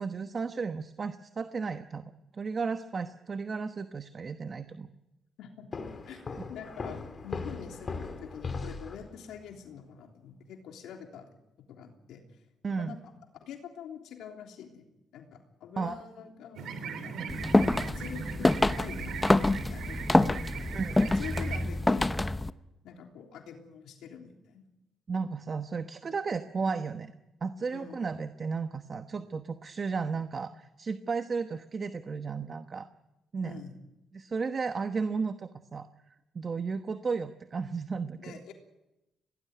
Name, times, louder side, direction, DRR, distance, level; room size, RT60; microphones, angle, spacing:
voice 1, 0.0-2.0 2.3-4.9 6.1-6.2 12.6-13.0 15.8-16.0 17.1-17.3 20.7-20.9 25.1-27.1 27.4-32.9 33.3-33.5 34.1-35.9 36.3-38.4, right 5 dB, 40° right, 9 dB, 1.1 m, -34 dB
sound 1, 5.7-9.4, left 4 dB, 40° left, 2.6 m, -39 dB
voice 2, 6.5-11.3 11.7-12.2 12.8-13.0 13.4-14.8 15.1-17.2 17.8-20.8 21.1-22.1 22.8-24.6 27.7-28.0 33.4-33.8 38.2-38.5, left 7 dB, 85° left, 3 dB, 3.4 m, -45 dB
sound 2, 16.5-21.6, right 5 dB, 75° right, 3.4 m, -39 dB
sound 3, 17.3-22.5, left 2 dB, 15° left, 0.9 m, -26 dB
22.0 x 18.0 x 9.5 m, 0.97 s
cardioid pair, 90°, 0 cm